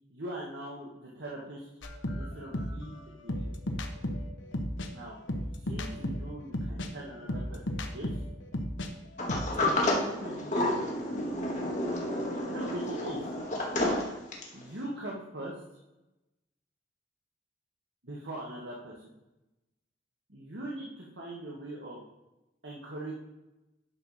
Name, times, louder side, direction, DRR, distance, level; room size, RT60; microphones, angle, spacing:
voice 1, 0.1-1.7 2.1-3.3 4.9-5.1 5.6-8.2 9.5-11.2 12.5-13.3 14.5-15.6 18.0-18.9 20.3-22.0 22.6-23.1, right 1 dB, 75° right, -4 dB, 1.7 m, -41 dB
sound 1, 1.8-8.9 9.2-9.7, left 1 dB, 90° left, 1.1 m, -34 dB
Sliding door, 9.2-14.6, left 1 dB, 40° left, 1.8 m, -30 dB
11.0 x 6.9 x 4.2 m, 0.99 s
head